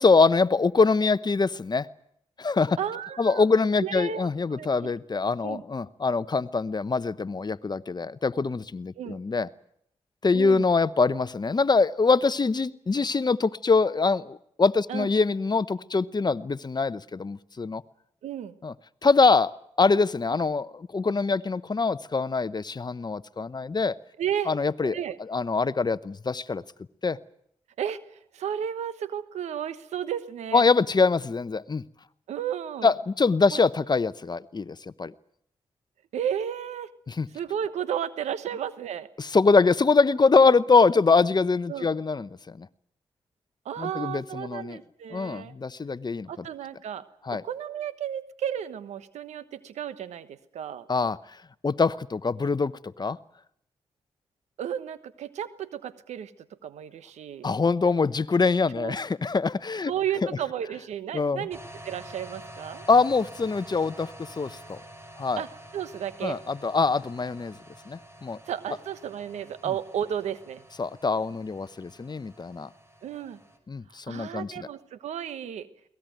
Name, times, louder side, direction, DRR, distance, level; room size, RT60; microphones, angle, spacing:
voice 1, 0.0-1.9 2.4-2.8 3.2-9.5 10.2-17.8 18.6-18.7 19.0-19.5 19.8-23.9 24.5-25.0 25.3-26.6 27.0-27.2 30.5-31.8 32.8-35.1 37.1-37.3 39.2-42.7 43.8-44.8 45.1-46.3 47.3-47.4 50.9-51.2 51.6-52.7 53.0-53.2 57.4-59.9 61.1-61.5 62.9-64.8 65.2-65.4 66.2-67.6 67.9-68.4 70.8-72.7 73.7-74.7, left 4 dB, 40° left, 16 dB, 0.9 m, -24 dB
voice 2, 2.8-3.4 3.8-4.9 5.4-5.6 9.0-9.2 10.3-10.7 14.9-15.1 18.2-18.6 20.4-20.5 24.2-24.5 24.8-25.2 27.8-30.6 32.3-32.9 33.5-33.6 36.1-36.9 37.3-39.1 41.7-41.9 43.6-45.5 46.3-47.0 47.3-50.9 54.6-56.3 56.6-57.5 58.7-59.0 59.8-61.6 61.8-62.8 65.4-65.5 65.7-66.4 68.5-70.6 73.0-73.4 73.9-75.7, right 9 dB, 90° right, 14 dB, 1.2 m, -33 dB
sound 1, 61.5-73.6, right 1 dB, 20° right, 5.4 m, -48 dB
22.5 x 18.5 x 9.2 m, 0.72 s
cardioid pair, 50°, 11 cm